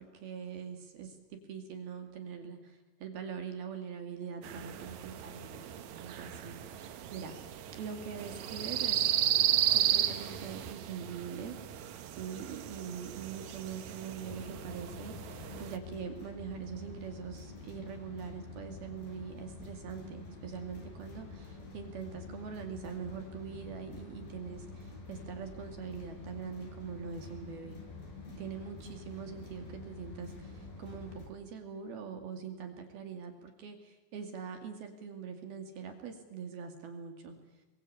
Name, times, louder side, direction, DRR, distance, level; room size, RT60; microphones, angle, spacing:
voice 1, 0.0-7.3 7.8-9.1 9.7-27.8 28.4-37.4, right 6 dB, 60° right, 5 dB, 4.0 m, -43 dB
sound 1, 4.4-15.8, right 10 dB, 80° right, 1.6 m, -34 dB
sound 2, 14.2-31.3, left 3 dB, 55° left, 7.4 m, -47 dB
29.0 x 22.5 x 8.7 m, 1.1 s
omnidirectional pair, 5.1 m